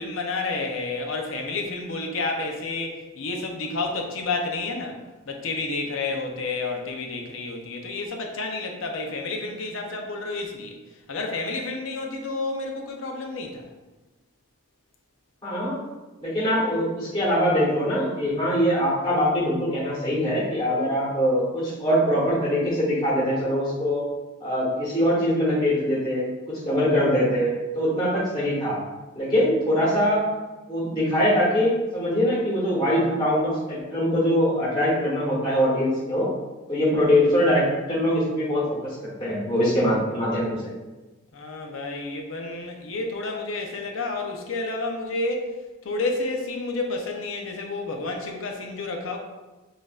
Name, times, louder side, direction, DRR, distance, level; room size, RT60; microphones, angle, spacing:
voice 1, 0.0-5.0 5.3-10.8 11.1-13.6 28.0-28.1 41.3-45.5 45.8-49.2, left 3 dB, 75° left, 2 dB, 0.6 m, -30 dB
voice 2, 15.4-15.8 16.2-24.0 24.4-28.8 29.2-30.3 30.7-36.3 36.7-40.7, equal, 20° left, -8 dB, 1.1 m, -23 dB
6.1 x 2.5 x 2.4 m, 1.2 s
head